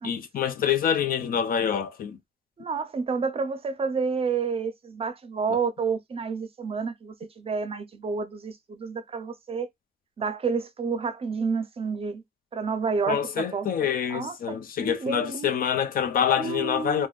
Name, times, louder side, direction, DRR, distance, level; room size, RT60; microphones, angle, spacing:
voice 1, 0.0-2.2 13.1-17.1, left 8 dB, 70° left, 0.6 m, -26 dB
voice 2, 2.6-9.7 10.2-12.2 12.5-13.7 14.1-15.5 16.4-17.1, right 5 dB, 40° right, 0.5 m, -30 dB
3.5 x 2.1 x 2.3 m
wide cardioid pair, 135°, 15 cm